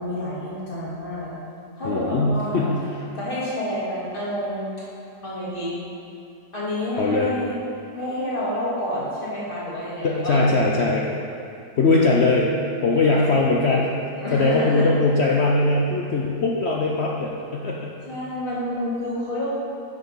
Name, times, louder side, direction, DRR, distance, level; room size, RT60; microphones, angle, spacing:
voice 1, 0.0-1.3 1.8-2.7 3.1-4.9 5.2-5.8 6.5-7.6 7.9-10.7 13.0-13.5 14.1-14.9 18.1-19.5, left 1 dB, 30° left, -8 dB, 2.4 m, -29 dB
voice 2, 1.8-3.0 6.9-7.3 10.0-11.1 11.8-12.5 12.8-13.9 14.3-17.9, left 3 dB, 65° left, -2 dB, 0.6 m, -20 dB
7.8 x 5.8 x 5.6 m, 2.6 s
omnidirectional pair, 1.9 m